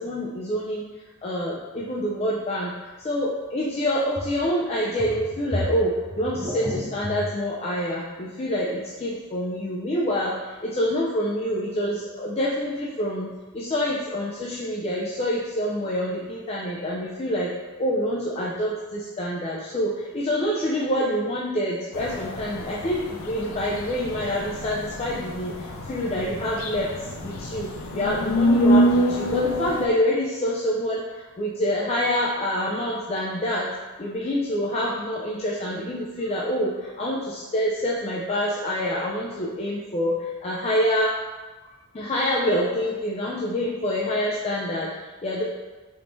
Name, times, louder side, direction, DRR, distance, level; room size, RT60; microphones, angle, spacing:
voice 1, 0.0-13.3 13.5-17.5 17.8-27.7 27.9-33.7 34.0-41.2 41.6-45.4, equal, 30° left, -5 dB, 0.4 m, -26 dB
sound 1, 1.8-1.9 4.1-4.4 4.7-7.2, equal, 15° right, 0.7 m, -33 dB
sound 2, 21.9-29.9, equal, 85° left, 0.5 m, -26 dB
4.4 x 3.6 x 2.6 m, 1.2 s
head